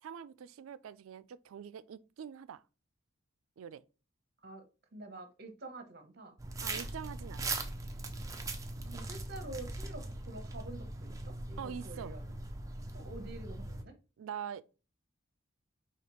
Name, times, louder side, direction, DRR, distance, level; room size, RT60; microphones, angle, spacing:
voice 1, 0.0-2.6 3.6-3.8 6.6-7.6 11.6-12.2 14.2-14.6, right 8 dB, 80° right, 0.3 m, -44 dB
voice 2, 4.9-6.4 8.9-12.2 12.9-13.9, right 2 dB, 50° right, 0.9 m, -47 dB
sound 1, 6.4-13.8, right 2 dB, 15° right, 0.4 m, -40 dB
4.9 x 2.9 x 3.0 m
head